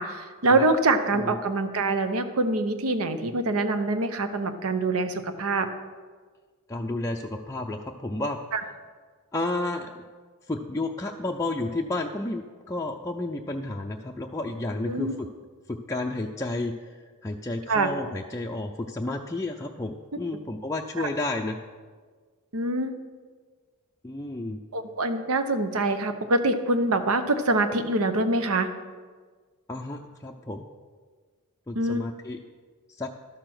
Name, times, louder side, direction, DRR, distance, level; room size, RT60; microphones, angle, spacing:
voice 1, 0.0-5.7 8.5-8.6 14.9-15.1 17.7-17.9 21.0-21.1 22.5-22.9 24.7-28.7 31.8-32.0, right 2 dB, 75° right, 9 dB, 0.9 m, -25 dB
voice 2, 6.7-8.4 9.3-9.9 10.5-15.3 15.7-16.9 17.2-21.6 24.0-24.6 29.7-30.6 31.7-32.4 33.0-33.1, left 2 dB, 15° left, 0 dB, 0.5 m, -31 dB
12.0 x 6.7 x 6.0 m, 1.5 s
head